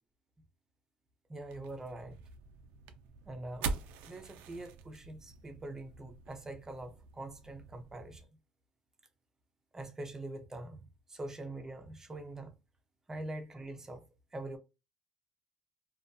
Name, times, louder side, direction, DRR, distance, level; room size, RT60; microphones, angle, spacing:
voice 1, 1.3-2.2 3.3-3.8 4.1-8.3 9.7-10.8 11.1-12.6 13.1-14.1 14.3-14.6, right 2 dB, 20° right, 0.6 m, -44 dB
sound 1, 1.5-8.2, right 5 dB, 85° right, 0.3 m, -44 dB
2.3 x 2.1 x 2.5 m
cardioid pair, 100°, 3 cm